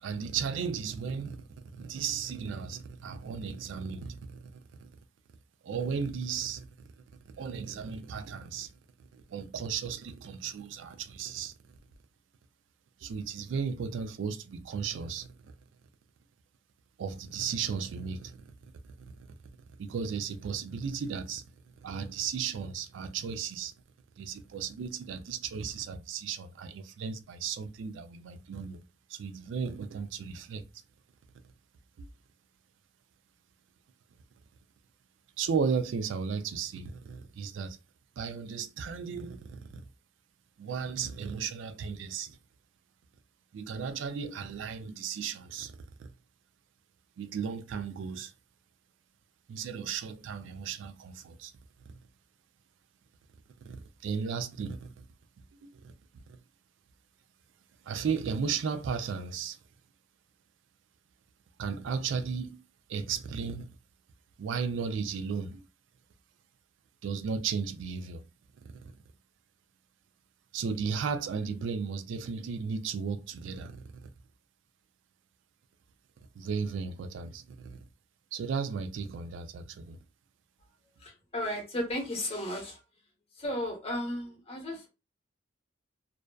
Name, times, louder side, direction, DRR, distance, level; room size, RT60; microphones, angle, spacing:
voice 1, 0.0-1.4 1.7-4.5 4.8-4.9 5.6-6.7 7.3-8.7 9.1-11.5 13.0-15.5 17.0-18.4 18.8-18.9 19.8-21.4 21.8-23.7 24.2-28.8 29.1-30.6 32.0-32.1 35.4-37.8 38.2-39.8 40.6-42.4 43.5-45.7 46.0-46.1 47.2-48.3 49.5-51.5 53.6-53.8 54.0-55.0 55.6-55.9 57.8-59.6 61.6-62.6 62.9-63.7 64.4-65.7 67.0-68.2 70.5-73.8 74.0-74.1 76.4-77.8 78.3-80.0, right 6 dB, 70° right, 0.3 m, -35 dB
voice 2, 81.0-82.8 83.3-84.9, left 1 dB, 30° left, 0.9 m, -34 dB
2.6 x 2.2 x 2.2 m
head